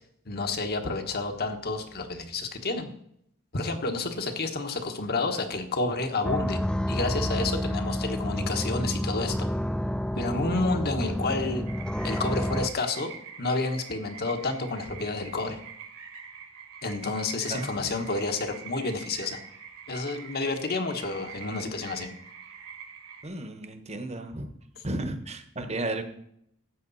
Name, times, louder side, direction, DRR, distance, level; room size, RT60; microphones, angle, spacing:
voice 1, 0.3-2.9 3.5-6.6 6.9-9.5 10.1-11.6 12.0-13.1 13.4-15.6 16.8-19.4 19.9-22.1, left 3 dB, 45° left, 6 dB, 1.4 m, -30 dB
sound 1, 6.2-12.7, equal, 5° left, 0.3 m, -29 dB
sound 2, 11.7-23.3, right 6 dB, 65° right, 2.0 m, -45 dB
voice 2, 17.5-18.0 23.2-24.5 24.8-26.0, right 2 dB, 30° right, 7 dB, 1.2 m, -34 dB
12.5 x 8.4 x 4.2 m, 0.71 s
head